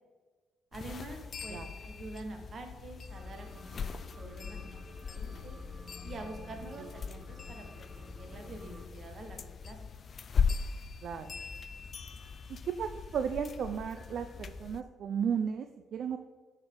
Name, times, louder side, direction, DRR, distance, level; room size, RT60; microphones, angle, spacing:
sound 1, 0.7-14.8, left 5 dB, 50° left, 0.3 m, -39 dB
voice 1, 0.7-3.9 4.2-5.6 6.0-7.7 7.9-9.8, right 2 dB, 45° right, 4 dB, 1.4 m, -46 dB
sound 2, 3.1-8.9, equal, ahead, 1.2 m, -53 dB
voice 2, 11.0-11.4 12.6-16.2, right 7 dB, 65° right, 8 dB, 0.4 m, -34 dB
9.4 x 4.4 x 3.8 m, 1.4 s
cardioid pair, 90°, 0 cm